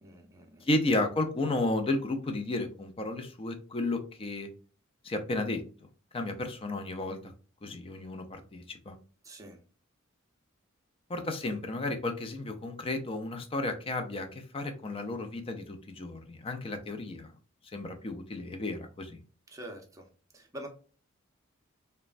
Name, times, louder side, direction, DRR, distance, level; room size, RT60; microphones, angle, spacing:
voice 1, 0.0-0.7 9.2-9.6 19.5-20.1 20.3-20.7, right 1 dB, 15° right, 2 dB, 0.6 m, -45 dB
voice 2, 0.6-4.5 5.0-5.6 6.1-7.3 7.6-9.0 11.1-17.3 17.7-19.2, left 2 dB, 25° left, 6 dB, 0.4 m, -33 dB
3.1 x 2.1 x 2.4 m, 0.38 s
head